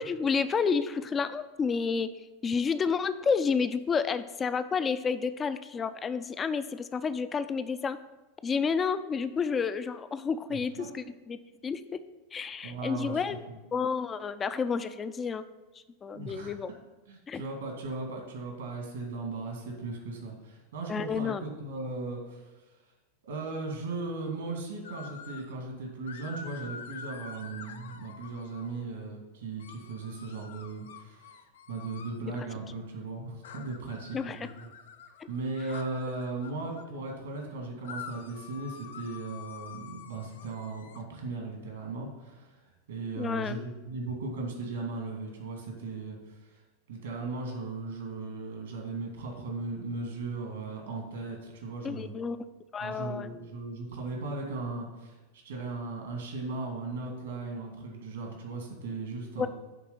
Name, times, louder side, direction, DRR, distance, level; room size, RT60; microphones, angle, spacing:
voice 1, 0.0-2.1 2.4-8.0 8.4-11.4 11.6-12.0 12.3-13.4 13.7-15.5 16.0-16.7 17.3-17.4 20.9-21.4 32.4-32.5 34.1-34.5 35.2-35.3 43.2-43.6 51.8-52.4 52.7-53.3 59.4-59.5, left 5 dB, 25° left, 12 dB, 0.5 m, -30 dB
voice 2, 10.5-10.9 12.6-13.2 13.5-13.6 16.1-16.5 17.1-22.5 23.3-31.3 31.7-34.7 35.3-42.6 42.9-46.6 46.9-52.1 52.8-59.5, right 3 dB, 75° right, 1 dB, 2.4 m, -37 dB
sound 1, 24.8-25.5 26.1-28.8 29.6-32.2 33.4-36.9 37.8-41.0, left 6 dB, 70° left, 0.6 m, -47 dB
9.2 x 3.7 x 7.0 m, 1.1 s
hypercardioid pair, 90°, 0 cm